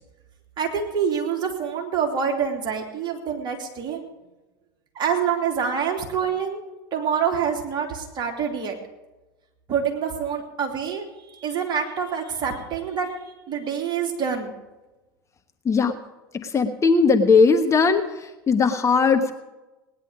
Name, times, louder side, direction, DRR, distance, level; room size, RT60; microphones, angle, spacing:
voice 1, 0.6-4.0 4.9-8.7 9.7-14.5, right 7 dB, 40° right, 1 dB, 3.1 m, -26 dB
voice 2, 16.3-19.3, left 4 dB, 25° left, 6 dB, 1.2 m, -19 dB
18.5 x 10.5 x 5.1 m, 1.1 s
hypercardioid pair, 80°, 12 cm